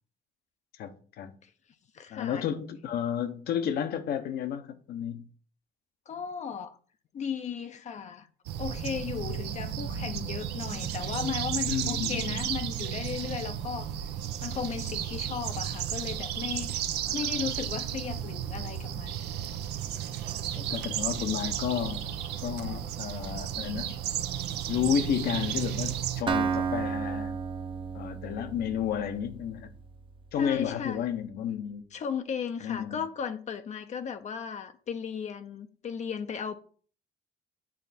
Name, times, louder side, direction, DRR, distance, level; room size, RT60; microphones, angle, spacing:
voice 1, 0.8-1.3 2.1-5.2 9.8-10.2 11.7-12.4 20.5-22.0 22.4-24.0 24.7-27.3 27.9-29.7 30.3-31.8 32.6-33.0, left 9 dB, 65° left, 1.0 m, -32 dB
voice 2, 1.9-2.4 6.1-6.8 7.1-8.3 8.6-14.1 14.4-16.7 17.1-19.2 30.4-31.1 31.9-36.6, left 7 dB, 45° left, 0.6 m, -36 dB
sound 1, 8.5-26.2, right 10 dB, 80° right, 0.7 m, -33 dB
Acoustic guitar, 26.3-30.1, right 6 dB, 30° right, 0.7 m, -32 dB
8.6 x 3.4 x 4.2 m
cardioid pair, 110°, 17 cm